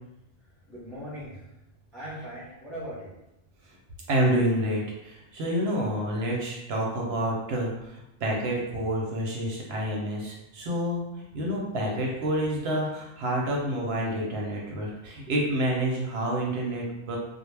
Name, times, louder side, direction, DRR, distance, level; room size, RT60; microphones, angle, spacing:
voice 1, 0.7-1.4 1.9-3.2, equal, ahead, -7 dB, 0.5 m, -39 dB
voice 2, 4.1-17.2, right 1 dB, 65° right, -2 dB, 0.7 m, -28 dB
2.1 x 2.0 x 3.1 m, 0.90 s
omnidirectional pair, 1.3 m